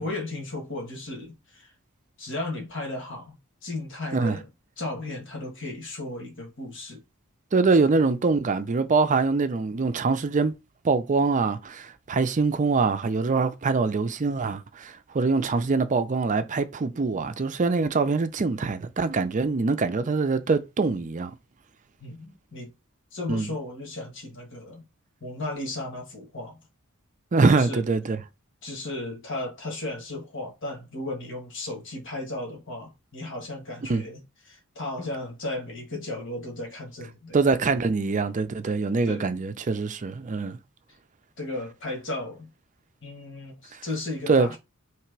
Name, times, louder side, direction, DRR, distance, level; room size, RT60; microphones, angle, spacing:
voice 1, 0.0-1.7 2.2-3.4 3.6-4.5 4.8-7.0 7.7-7.8 22.0-22.7 23.1-24.8 25.2-26.5 27.5-27.9 28.6-37.4 39.0-39.3 41.4-42.5 43.0-44.6, left 2 dB, 60° left, 1.5 m, -35 dB
voice 2, 7.5-10.5 10.8-21.3 23.3-23.5 27.3-28.2 33.9-34.0 37.3-40.6 43.7-43.8 44.3-44.6, right 4 dB, 35° right, 0.5 m, -24 dB
3.2 x 2.9 x 4.6 m
head